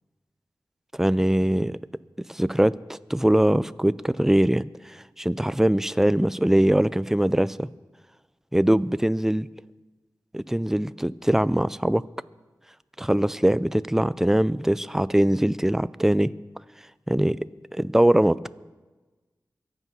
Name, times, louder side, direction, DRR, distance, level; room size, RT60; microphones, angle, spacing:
voice 1, 0.9-1.8 2.3-7.7 8.5-9.5 10.3-12.0 13.0-16.3 17.1-17.4 17.7-18.5, right 1 dB, 5° right, 17 dB, 0.4 m, -22 dB
24.0 x 8.3 x 5.6 m, 1.2 s
wide cardioid pair, 80°, 7 cm